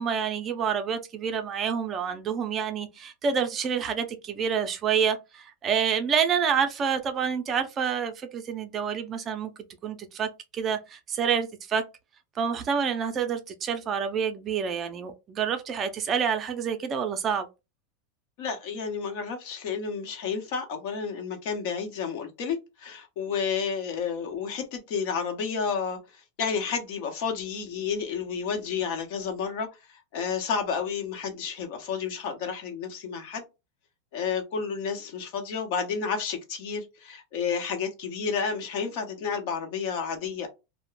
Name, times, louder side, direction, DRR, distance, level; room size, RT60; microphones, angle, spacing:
voice 1, 0.0-9.5 9.8-11.8 12.4-17.5, right 7 dB, 30° right, 0.5 m, -28 dB
voice 2, 18.4-33.4 34.1-40.5, left 6 dB, 60° left, 0.9 m, -31 dB
2.4 x 2.1 x 3.1 m
supercardioid pair, 135°, 0 cm